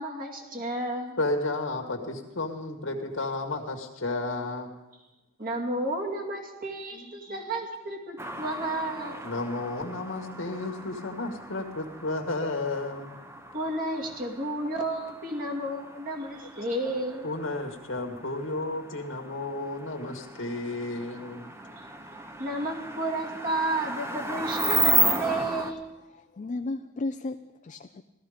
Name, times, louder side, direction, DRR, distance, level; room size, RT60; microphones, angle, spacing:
voice 1, 0.0-1.2 5.4-9.2 13.5-17.3 21.8-21.9 22.4-25.9, right 1 dB, 45° right, 0 dB, 2.4 m, -32 dB
voice 2, 1.2-4.7 6.9-7.4 9.1-13.2 17.2-21.5, left 2 dB, 90° left, 3 dB, 1.8 m, -32 dB
sound 1, 8.2-25.7, right 2 dB, 15° right, 0.9 m, -34 dB
voice 3, 26.1-28.0, left 2 dB, 40° left, 7 dB, 0.4 m, -34 dB
17.0 x 13.5 x 5.1 m, 1.0 s
head